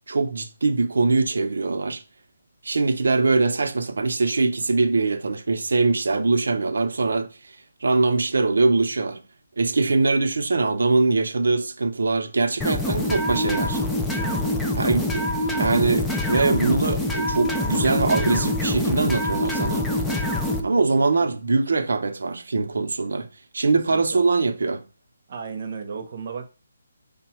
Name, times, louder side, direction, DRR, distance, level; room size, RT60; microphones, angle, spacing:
voice 1, 0.1-2.0 2.6-7.6 7.8-9.2 9.6-13.8 14.8-19.8 20.6-23.3 23.5-24.8, right 3 dB, 80° right, 0.6 m, -22 dB
sound 1, 12.6-20.6, left 1 dB, 5° left, 0.3 m, -25 dB
voice 2, 14.1-14.5 20.8-20.9 23.9-24.2 25.3-26.4, right 6 dB, 40° right, 0.7 m, -34 dB
5.2 x 2.1 x 4.3 m
hypercardioid pair, 170°, 0 cm